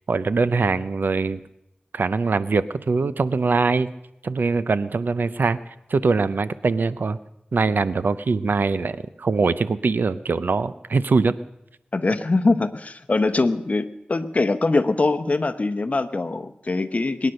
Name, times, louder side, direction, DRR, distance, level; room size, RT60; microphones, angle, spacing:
voice 1, 0.1-1.4 1.9-3.9 4.2-5.6 5.9-7.2 7.5-11.4, right 4 dB, 80° right, 14 dB, 0.6 m, -22 dB
voice 2, 11.9-17.3, left 3 dB, 50° left, 11 dB, 0.9 m, -22 dB
22.0 x 10.0 x 6.5 m, 0.83 s
wide cardioid pair, 85°, 3 cm